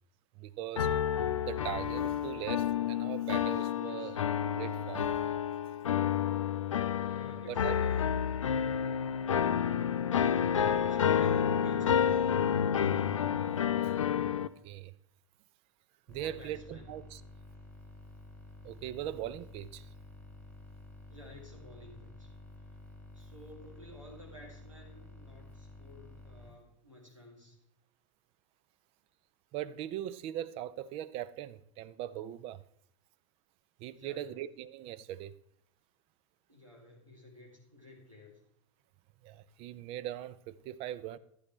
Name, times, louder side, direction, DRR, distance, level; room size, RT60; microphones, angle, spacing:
voice 1, 0.4-1.0 1.4-4.3 4.5-5.2 7.5-7.8 10.6-10.8 14.4-14.9 16.1-17.2 18.6-19.9 29.5-32.6 33.8-35.3 39.2-41.2, right 12 dB, 35° right, 0.4 m, -40 dB
sound 1, 0.8-14.5, left 8 dB, 75° left, 0.4 m, -30 dB
voice 2, 3.8-4.1 7.0-8.3 10.8-12.4 16.2-16.9 21.1-22.3 23.1-27.6 33.9-34.4 36.5-38.4, left 1 dB, 90° right, 2.5 m, -52 dB
sound 2, 16.1-26.5, left 2 dB, 5° left, 2.7 m, -51 dB
11.5 x 9.9 x 3.1 m
figure-of-eight pair, 85°, 16 cm